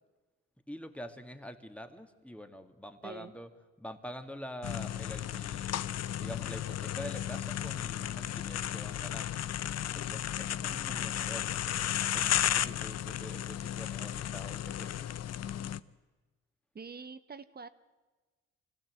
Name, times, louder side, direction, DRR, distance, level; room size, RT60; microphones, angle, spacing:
voice 1, 0.7-3.5 3.8-5.8 6.2-9.4 9.9-11.5 12.0-15.1, equal, 5° left, 7 dB, 2.0 m, -46 dB
voice 2, 3.0-3.3 16.7-17.7, right 5 dB, 30° right, 12 dB, 1.1 m, -45 dB
sound 1, 4.6-15.8, left 11 dB, 55° left, 0.7 m, -34 dB
25.0 x 16.0 x 7.9 m, 1.3 s
cardioid pair, 90°, 30 cm